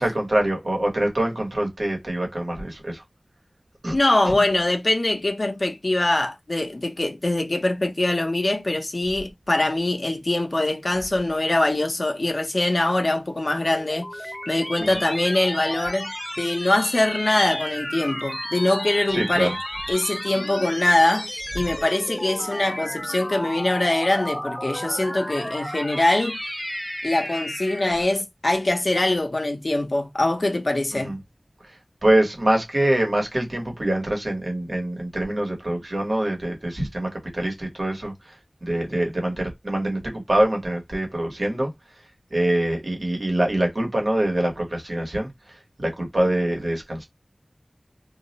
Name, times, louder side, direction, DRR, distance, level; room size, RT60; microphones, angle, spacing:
voice 1, 0.0-3.0 3.8-3.9 4.2-4.4 14.8-14.9 19.1-19.6 30.9-31.2 31.6-31.7 32.0-38.3 38.6-41.7 42.3-45.3 45.8-47.0, right 1 dB, 70° right, 1.0 m, -24 dB
voice 2, 3.9-16.1 16.4-19.5 19.9-26.4 27.0-31.1, left 2 dB, 65° left, 0.6 m, -23 dB
sound 1, 13.5-28.2, equal, 10° left, 0.4 m, -33 dB
2.3 x 2.0 x 3.8 m
wide cardioid pair, 45°, 0 cm